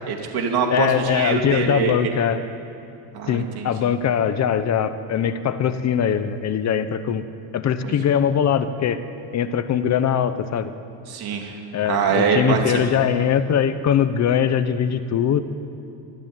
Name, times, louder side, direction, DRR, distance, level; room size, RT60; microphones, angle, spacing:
voice 1, 0.1-2.1 3.1-3.9 7.8-8.0 11.1-11.5 11.9-12.8, right 6 dB, 45° right, 2 dB, 2.9 m, -23 dB
voice 2, 0.7-2.4 3.3-7.2 7.5-9.0 9.3-10.7 11.7-15.4, left 8 dB, 35° left, 11 dB, 0.8 m, -21 dB
24.5 x 14.0 x 9.0 m, 2.6 s
cardioid pair, 175°, 50 cm